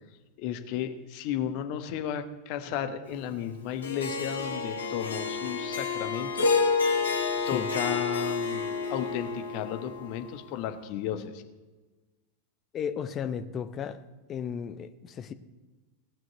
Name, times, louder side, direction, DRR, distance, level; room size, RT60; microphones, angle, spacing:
voice 1, 0.4-6.6 7.5-11.4, left 9 dB, 45° left, 1.2 m, -34 dB
Harp, 3.8-10.2, left 4 dB, 65° left, 2.9 m, -29 dB
voice 2, 12.7-14.0 14.3-15.3, left 7 dB, 30° left, 0.8 m, -34 dB
17.5 x 6.2 x 8.0 m
figure-of-eight pair, 90°, 0 cm